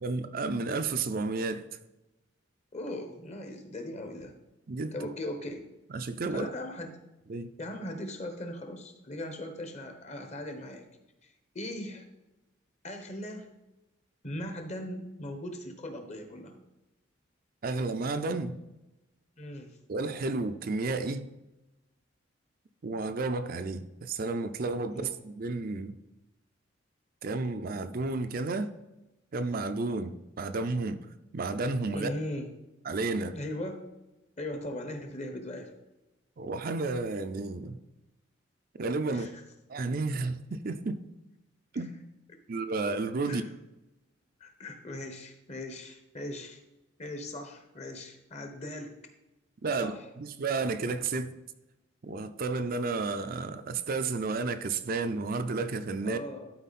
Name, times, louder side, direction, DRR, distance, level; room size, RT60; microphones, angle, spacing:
voice 1, 0.0-1.7 4.7-4.9 5.9-6.5 7.3-7.5 17.6-18.6 19.9-21.3 22.8-26.0 27.2-28.7 29.3-31.0 31.3-32.1 32.8-33.4 36.4-37.8 38.8-39.3 39.7-41.0 41.7-42.0 42.5-43.4 49.6-51.3 52.0-56.2, right 3 dB, 50° right, 9 dB, 0.5 m, -32 dB
voice 2, 2.7-4.4 4.9-5.6 6.3-7.0 7.6-10.9 11.2-12.0 12.8-13.5 14.2-16.6 19.4-19.8 24.9-25.1 31.9-32.5 33.3-33.9 34.4-35.7 39.1-39.3 43.3-43.5 44.4-46.6 47.0-48.9 49.8-50.0 56.0-56.5, left 1 dB, 35° left, 5 dB, 1.2 m, -39 dB
12.0 x 4.6 x 4.2 m, 0.99 s
head